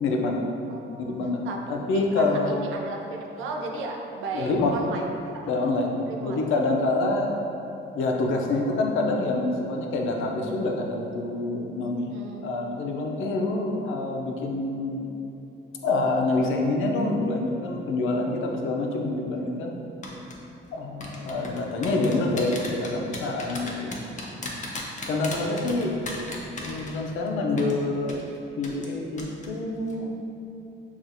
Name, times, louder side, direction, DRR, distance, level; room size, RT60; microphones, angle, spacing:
voice 1, 0.0-0.4 0.9-1.4 1.7-2.7 4.3-4.7 5.5-7.3 7.9-12.1 12.4-15.0 15.8-19.7 20.7-24.0 25.1-26.0 26.6-28.3 28.6-30.1, left 2 dB, 80° left, 1 dB, 0.5 m, -26 dB
voice 2, 1.9-5.1 5.3-5.5 6.1-6.4 12.1-12.5, right 3 dB, 85° right, 1 dB, 0.5 m, -35 dB
sound 1, 20.0-20.3 21.0-27.3 27.6-27.7 28.1-28.2 28.6-28.9 29.2-29.5 29.8-29.9, left 3 dB, 40° left, 0.7 m, -35 dB
5.9 x 2.4 x 2.6 m, 2.8 s
cardioid pair, 90°, 20 cm